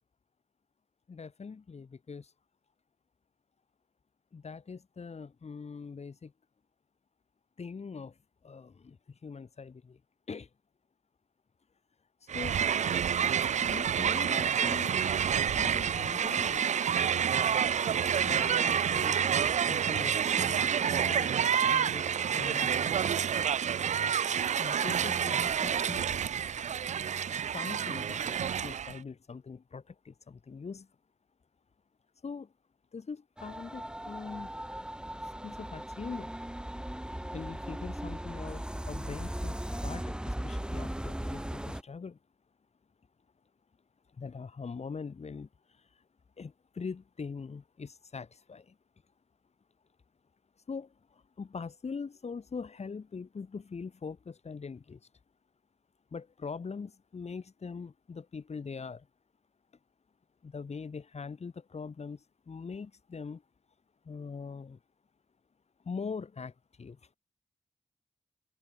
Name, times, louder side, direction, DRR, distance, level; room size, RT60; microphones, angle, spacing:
voice 1, 1.1-2.3 4.3-6.3 7.6-8.1 8.4-9.0 9.2-10.0 10.3-10.5 12.3-12.6 13.6-15.0 15.3-16.8 18.2-19.2 19.7-22.9 24.6-26.1 27.5-30.9 32.2-32.5 32.9-34.5 35.4-36.4 37.3-42.2 44.2-45.5 46.4-48.7 50.7-55.0 56.1-59.1 60.4-62.2 62.5-63.4 64.1-64.8 65.9-67.0, left 5 dB, 65° left, 3.7 m, -42 dB
Crowd, 12.3-29.0, right 8 dB, 80° right, 0.6 m, -28 dB
sound 1, 33.4-41.8, right 1 dB, 5° right, 2.0 m, -38 dB
cardioid pair, 50°, 12 cm